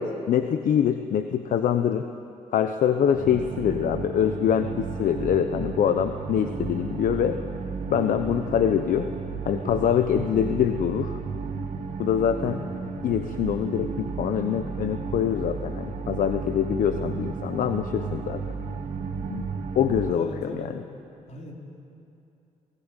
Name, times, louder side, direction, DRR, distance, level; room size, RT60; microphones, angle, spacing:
voice 1, 0.0-2.1 2.5-7.4 7.9-9.1 9.4-11.2 12.0-12.6 13.0-18.4 19.3-19.5 19.7-20.3, left 9 dB, 70° left, 8 dB, 1.0 m, -24 dB
sound 1, 3.1-20.1, right 5 dB, 65° right, 2.4 m, -33 dB
voice 2, 20.2-20.9 21.3-21.5, left 2 dB, 55° left, 0 dB, 4.5 m, -38 dB
27.0 x 18.5 x 9.1 m, 2.7 s
cardioid pair, 100°, 14 cm